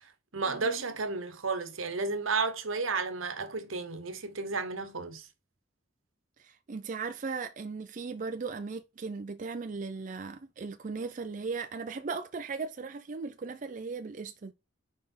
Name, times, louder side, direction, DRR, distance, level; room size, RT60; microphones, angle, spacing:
voice 1, 0.0-5.3, right 4 dB, 85° right, 1.1 m, -33 dB
voice 2, 6.4-14.5, right 4 dB, 40° right, 0.4 m, -37 dB
4.9 x 4.1 x 5.4 m
head